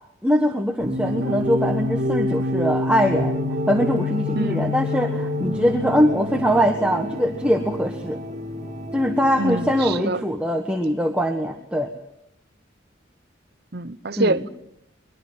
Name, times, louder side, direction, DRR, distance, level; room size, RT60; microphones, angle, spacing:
voice 1, 0.2-3.4 3.7-8.2 8.9-11.9 14.2-14.5, equal, 5° right, 1.4 m, -22 dB
sound 1, 0.8-10.0, left 1 dB, 40° right, 2.3 m, -27 dB
voice 2, 4.3-4.7 9.4-10.2 13.7-14.5, right 2 dB, 55° right, 0.9 m, -25 dB
24.0 x 21.5 x 7.6 m
head